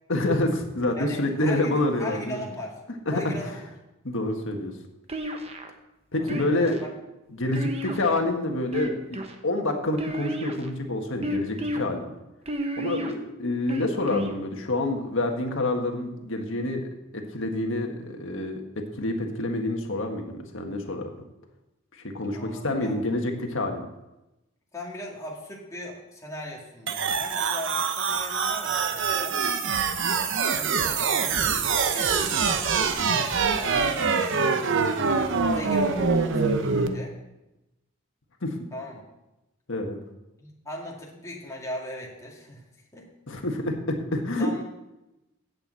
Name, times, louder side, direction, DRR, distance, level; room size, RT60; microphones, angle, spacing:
voice 1, 0.1-2.4 3.1-3.3 4.0-4.7 6.1-6.8 7.3-12.0 12.8-18.6 18.9-21.1 22.1-23.8 38.4-38.6 39.7-40.0 43.3-44.5, left 2 dB, 65° left, 3 dB, 1.6 m, -27 dB
voice 2, 1.0-2.8 3.1-3.6 6.2-6.9 22.3-23.0 24.7-29.4 30.5-31.4 31.9-34.8 35.5-37.1 38.7-39.0 40.4-42.6 42.9-43.1 43.4-43.6 44.4-44.6, left 1 dB, 15° left, -3 dB, 2.1 m, -39 dB
sound 1, 5.1-5.7 6.3-6.8 7.5-8.3 8.7-9.3 10.0-10.7 11.2-11.8 12.5-13.1 13.7-14.3, right 1 dB, 30° right, 1.0 m, -31 dB
sound 2, 26.9-36.9, right 5 dB, 65° right, 0.8 m, -24 dB
8.0 x 6.9 x 8.1 m, 0.96 s
head